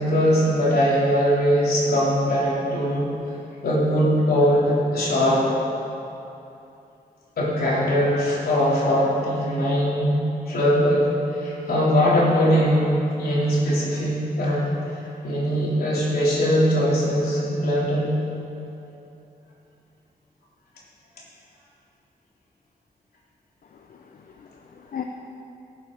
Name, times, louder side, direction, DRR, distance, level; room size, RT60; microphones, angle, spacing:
voice 1, 0.0-3.1 3.6-5.4 7.4-10.2 10.5-14.7 15.2-18.1, equal, 85° left, -6 dB, 3.6 m, -21 dB
voice 2, 23.7-25.0, left 9 dB, 65° left, 3 dB, 0.7 m, -38 dB
17.5 x 7.8 x 5.4 m, 2.8 s
wide cardioid pair, 135°, 16 cm